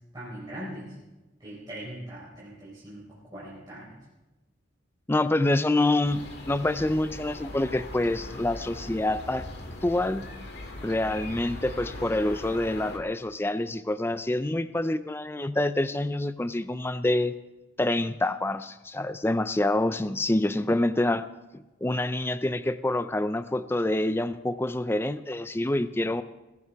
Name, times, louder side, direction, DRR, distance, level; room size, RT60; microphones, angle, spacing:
voice 1, 0.1-1.0 1.4-4.0, right 1 dB, 20° right, -9 dB, 4.1 m, -41 dB
voice 2, 5.1-9.5 9.8-10.3 10.8-17.3 17.8-21.3 21.5-26.2, left 1 dB, 10° left, 13 dB, 0.4 m, -27 dB
sound 1, 6.0-13.0, left 1 dB, 55° left, 2.0 m, -40 dB
21.5 x 15.0 x 3.5 m, 1.1 s
head